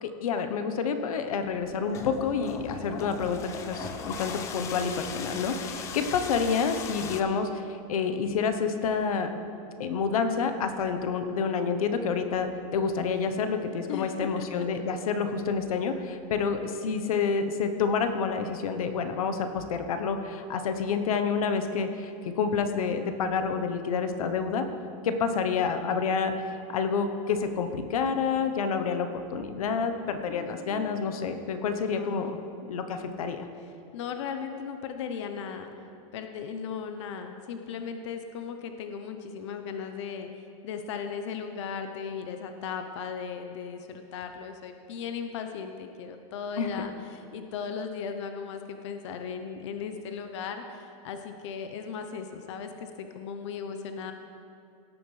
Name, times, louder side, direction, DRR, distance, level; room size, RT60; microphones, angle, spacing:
voice 1, 0.0-9.3 9.8-24.7 25.0-32.4 32.7-33.5 46.6-46.7, left 5 dB, 85° left, 8 dB, 1.0 m, -28 dB
sound 1, 1.5-7.2, left 5 dB, 15° left, 0.4 m, -38 dB
voice 2, 13.9-14.7 30.3-31.0 31.7-32.3 33.6-35.7 36.1-40.3 40.6-54.1, left 6 dB, 55° left, 6 dB, 0.8 m, -37 dB
17.5 x 8.8 x 3.3 m, 2.6 s
supercardioid pair, 170°, 18 cm